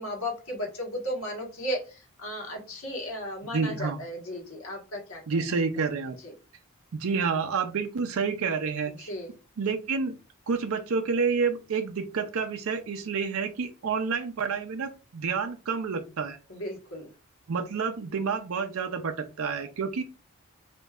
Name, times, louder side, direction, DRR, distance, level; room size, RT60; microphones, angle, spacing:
voice 1, 0.0-5.2 6.2-6.3 8.9-9.3 16.5-17.1, equal, 85° left, 0 dB, 1.4 m, -35 dB
voice 2, 3.5-4.0 5.3-6.2 6.9-9.1 9.6-10.1 10.5-16.4 17.5-20.0, right 5 dB, 80° right, 7 dB, 0.5 m, -29 dB
5.0 x 2.6 x 2.4 m, 0.32 s
head